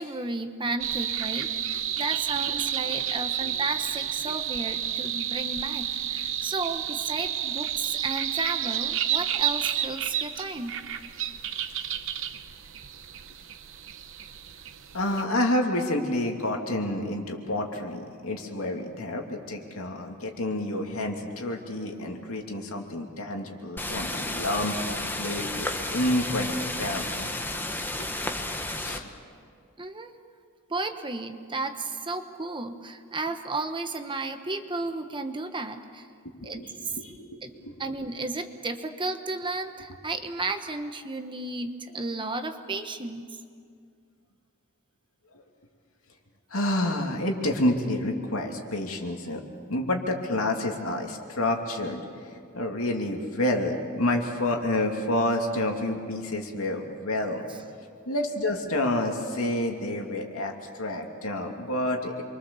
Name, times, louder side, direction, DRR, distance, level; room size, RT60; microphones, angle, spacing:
voice 1, 0.0-10.7 29.8-30.1 30.7-36.1 36.4-36.9 37.4-37.5 37.8-43.4 57.5-57.6, right 3 dB, 25° right, 7 dB, 1.1 m, -33 dB
sound 1, 0.8-15.2, right 10 dB, 65° right, 1.0 m, -31 dB
voice 2, 14.9-27.3 28.0-28.1 28.7-29.1 36.4-37.4 37.7-37.8 45.3-45.4 46.5-49.4 49.7-57.4 58.1-62.2, left 1 dB, 75° left, 2 dB, 2.8 m, -29 dB
sound 2, 23.8-29.0, left 1 dB, 10° left, 1.3 m, -32 dB
28.5 x 23.5 x 7.1 m, 2.2 s
head